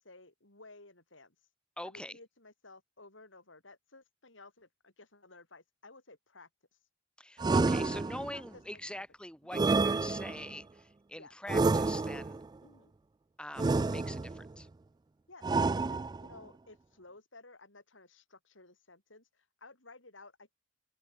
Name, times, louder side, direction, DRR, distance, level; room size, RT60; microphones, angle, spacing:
voice 1, 0.0-1.4 1.8-6.8 8.3-9.0 11.2-11.4 12.6-12.9 15.3-20.6, left 3 dB, 80° left, 7.3 m, -56 dB
voice 2, 1.8-2.2 7.2-12.4 13.4-14.7, left 1 dB, 5° left, 2.5 m, -44 dB
sound 1, 7.4-8.5 9.5-10.6 11.5-12.4 13.6-14.5 15.4-16.4, right 3 dB, 20° right, 0.3 m, -29 dB
open air
head